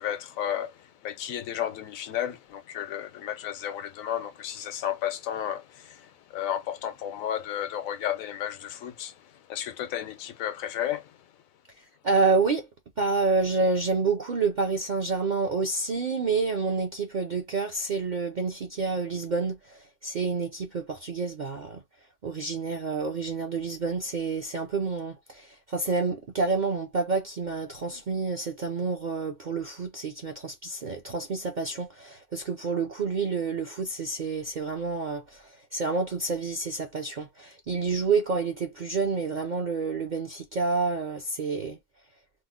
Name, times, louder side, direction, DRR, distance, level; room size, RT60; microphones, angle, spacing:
voice 1, 0.0-11.3, left 10 dB, 85° left, 1.0 m, -33 dB
voice 2, 12.0-12.7 13.0-21.8 22.2-41.8, right 4 dB, 60° right, 0.5 m, -28 dB
3.0 x 2.0 x 3.5 m
omnidirectional pair, 1.4 m